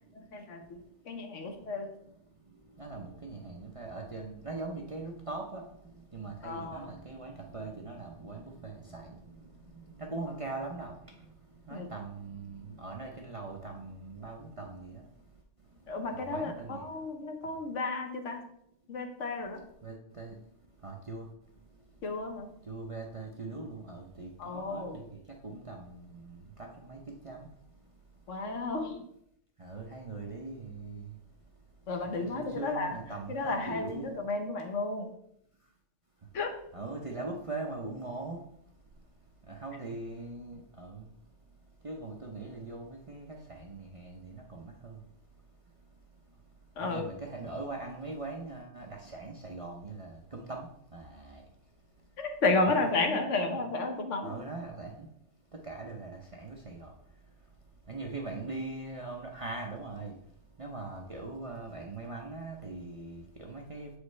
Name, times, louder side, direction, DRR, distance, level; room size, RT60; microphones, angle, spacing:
voice 1, 0.1-1.9 6.4-6.9 11.7-11.9 15.9-18.4 18.9-19.6 22.0-22.5 24.4-25.0 28.3-29.0 31.9-33.0 33.3-35.1 36.3-36.5 46.8-47.1 52.2-54.4, left 3 dB, 75° left, 4 dB, 1.2 m, -32 dB
voice 2, 2.8-5.6 6.1-10.9 11.7-15.0 16.1-16.8 19.8-20.4 20.8-21.3 22.7-27.5 29.6-31.1 32.1-34.1 36.7-38.4 39.5-41.1 41.8-45.0 46.8-51.4 52.6-53.2 54.2-55.1 55.6-56.9 57.9-60.1 60.6-63.9, right 3 dB, 35° right, 0 dB, 0.6 m, -41 dB
7.3 x 4.9 x 3.1 m, 0.73 s
omnidirectional pair, 1.3 m